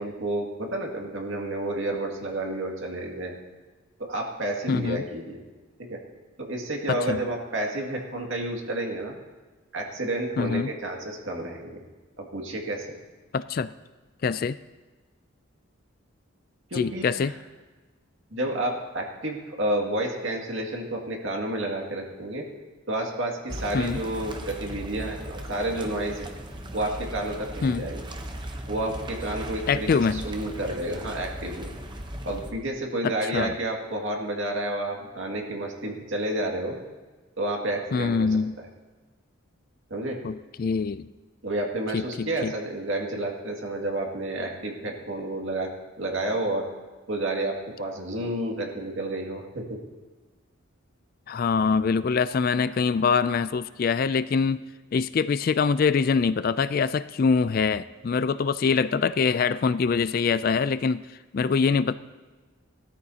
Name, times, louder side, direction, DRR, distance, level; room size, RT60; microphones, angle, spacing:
voice 1, 0.0-3.3 4.0-5.4 5.8-6.0 6.4-9.1 9.7-11.8 12.2-12.9 16.7-17.3 18.3-22.4 22.9-26.3 26.7-28.1 28.7-31.7 32.2-36.8 37.4-38.4 39.9-40.2 41.4-45.7 46.0-46.7 47.1-49.8, right 1 dB, 60° right, 0 dB, 2.2 m, -30 dB
voice 2, 4.7-5.0 6.9-7.2 10.4-10.7 13.3-13.7 14.2-14.6 16.8-17.3 23.7-24.0 27.6-27.8 29.7-30.2 33.0-33.5 37.9-38.5 40.2-41.1 41.9-42.5 51.3-54.6 54.9-61.1 61.3-61.9, left 5 dB, 45° left, 14 dB, 0.3 m, -24 dB
sound 1, 23.5-32.5, right 1 dB, 20° right, 0.8 m, -37 dB
19.0 x 13.5 x 2.8 m, 1.3 s
head